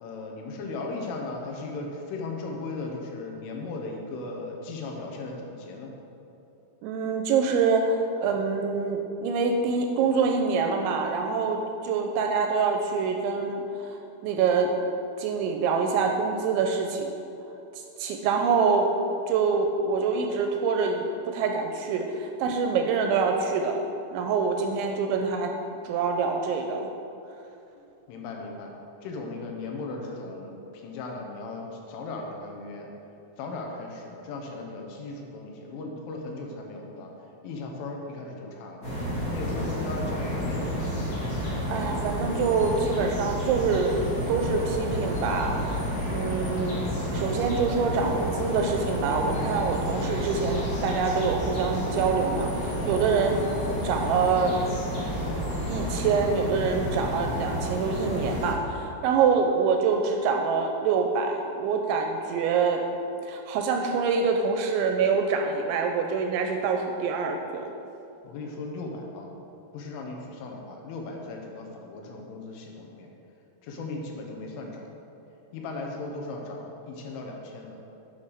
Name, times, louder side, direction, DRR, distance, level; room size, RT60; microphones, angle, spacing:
voice 1, 0.0-5.9 27.8-28.7 29.0-32.9 33.4-37.1 37.4-38.9 39.3-40.9 68.2-69.3 69.7-73.1 73.6-74.9 75.5-77.8, left 3 dB, 85° left, 1 dB, 3.7 m, -37 dB
voice 2, 6.8-14.7 15.2-17.1 17.7-18.9 19.3-25.5 25.8-26.9 41.7-44.0 44.3-53.5 53.8-54.6 55.7-62.8 63.2-67.7, right 5 dB, 85° right, 4 dB, 2.8 m, -26 dB
sound 1, 38.8-58.5, equal, 50° left, 1.1 m, -30 dB
9.5 x 5.6 x 6.5 m, 2.8 s
omnidirectional pair, 5.6 m